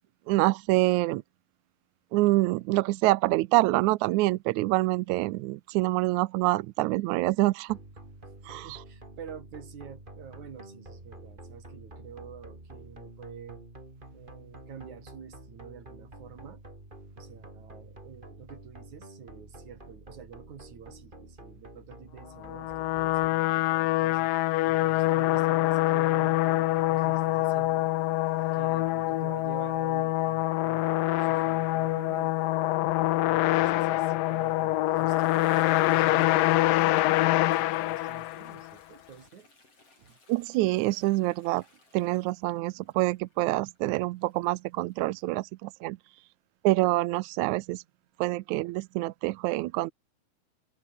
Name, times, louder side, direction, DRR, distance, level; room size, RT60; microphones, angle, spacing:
voice 1, 0.3-1.2 2.1-7.8 8.5-8.8 40.3-41.6 41.9-46.0 46.6-47.8 48.2-49.9, right 19 dB, 80° right, 1.8 m, -26 dB
sound 1, 7.7-23.3, right 1 dB, 15° right, 5.0 m, -48 dB
voice 2, 8.6-13.6 14.1-16.6 17.2-27.9 28.5-32.4 33.2-39.5 40.0-40.2 42.8-42.9, right 7 dB, 60° right, 4.0 m, -48 dB
sound 2, 22.4-38.7, left 16 dB, 85° left, 2.6 m, -25 dB
Toilet flush, 34.8-45.3, left 3 dB, 45° left, 9.2 m, -59 dB
omnidirectional pair, 3.8 m